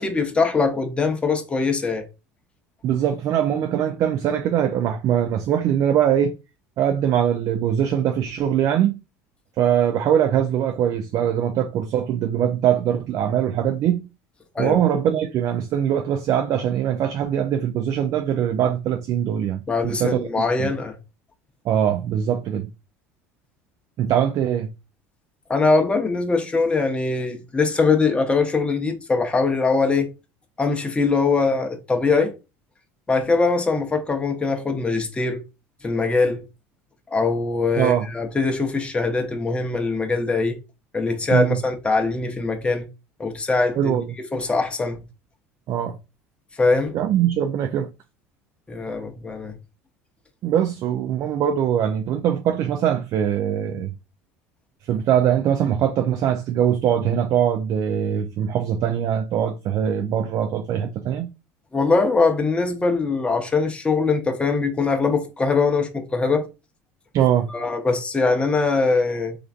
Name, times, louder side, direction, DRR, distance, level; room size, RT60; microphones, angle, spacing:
voice 1, 0.0-2.0 14.5-14.8 19.7-21.0 25.5-30.1 30.6-32.3 33.1-35.4 35.8-36.4 37.1-40.6 40.9-42.9 43.2-44.1 44.3-45.0 46.6-47.0 48.7-49.5 61.7-66.4 67.5-69.4, left 4 dB, 15° left, 0.7 m, -22 dB
voice 2, 2.8-6.3 6.8-8.9 9.6-14.0 14.6-20.3 20.6-20.7 21.7-22.7 24.0-24.7 37.8-38.1 41.3-41.6 43.8-44.1 45.7-46.0 46.9-47.9 50.4-53.9 54.9-61.3 67.1-67.5, right 9 dB, 50° right, 0.4 m, -22 dB
3.1 x 2.4 x 2.4 m
hypercardioid pair, 80°, 7 cm